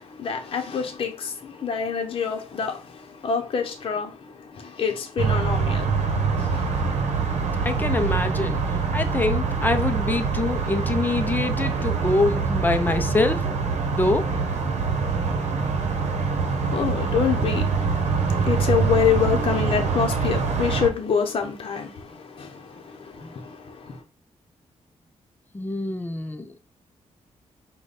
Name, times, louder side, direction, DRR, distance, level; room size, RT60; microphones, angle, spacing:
voice 1, 0.0-6.8 16.4-24.0, left 7 dB, 50° left, 0.8 m, -27 dB
sound 1, 5.2-20.9, right 5 dB, 70° right, 0.9 m, -24 dB
voice 2, 7.6-13.4 13.9-14.3 25.5-26.6, left 2 dB, 15° left, 0.5 m, -25 dB
4.9 x 2.3 x 4.1 m
wide cardioid pair, 130°, 12 cm